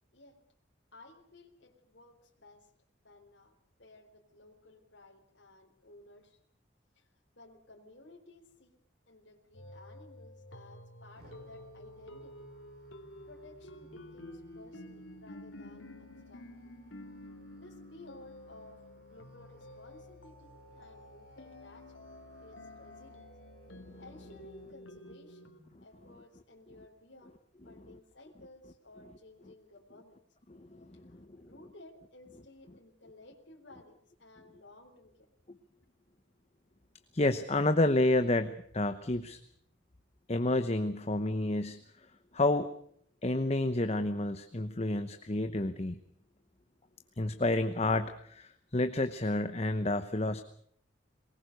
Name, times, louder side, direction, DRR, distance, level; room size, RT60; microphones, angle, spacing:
voice 1, 0.9-2.7 3.0-6.4 7.0-7.1 7.4-8.8 9.1-12.4 13.3-16.5 17.5-21.9 22.4-23.3 24.0-25.5 25.8-27.3 27.6-30.2 31.1-35.3, left 2 dB, 65° left, 1 dB, 3.8 m, -56 dB
sound 1, 9.5-25.6, left 1 dB, 85° left, 3.1 m, -51 dB
Musical instrument, 11.2-24.7, equal, 55° right, 7.3 m, -60 dB
voice 2, 30.5-31.2 37.1-39.4 40.3-41.8 42.3-42.7 43.2-46.0 47.2-50.4, left 2 dB, 35° left, 9 dB, 1.0 m, -30 dB
23.0 x 20.0 x 6.6 m, 0.65 s
head